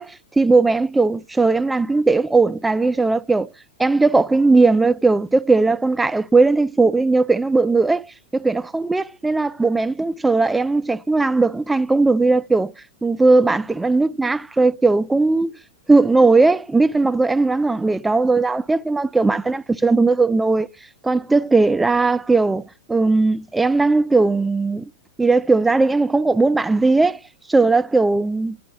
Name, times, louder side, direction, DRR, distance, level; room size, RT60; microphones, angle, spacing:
voice 1, 0.0-3.5 3.8-8.1 8.3-12.7 13.0-15.6 15.9-20.7 21.0-22.6 22.9-24.8 25.2-27.2 27.5-28.6, right 3 dB, 10° right, 0.3 m, -18 dB
11.0 x 3.8 x 4.6 m
hypercardioid pair, 105°, 0 cm